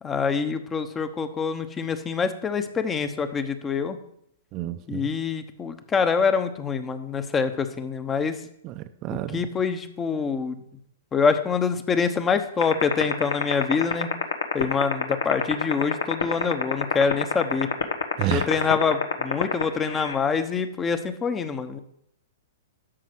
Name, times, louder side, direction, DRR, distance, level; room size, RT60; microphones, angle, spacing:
voice 1, 0.0-4.0 4.9-8.4 9.3-10.6 11.1-14.1 14.5-17.7 18.3-21.8, left 5 dB, 20° left, 10 dB, 1.0 m, -25 dB
voice 2, 4.5-5.1 8.6-9.5 18.2-18.7, right 11 dB, 35° right, 10 dB, 0.7 m, -30 dB
sound 1, 12.6-20.1, left 7 dB, 85° left, 1.3 m, -22 dB
12.5 x 5.4 x 6.1 m, 0.73 s
hypercardioid pair, 130°, 0 cm